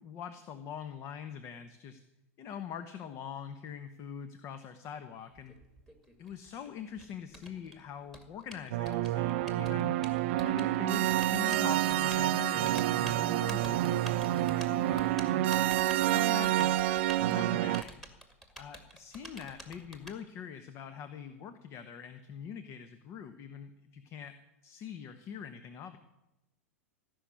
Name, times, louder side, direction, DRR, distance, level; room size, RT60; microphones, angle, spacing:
voice 1, 0.0-2.0 2.4-5.6 6.2-10.0 10.4-15.5 15.9-16.8 17.2-18.0 18.6-24.3 24.6-26.0, left 8 dB, 35° left, 10 dB, 1.0 m, -43 dB
Typing, 5.3-20.1, right 1 dB, 5° left, 2.2 m, -49 dB
sound 1, 8.7-17.8, right 14 dB, 55° right, 0.5 m, -28 dB
16.0 x 6.5 x 9.7 m, 0.95 s
figure-of-eight pair, 95°, 8 cm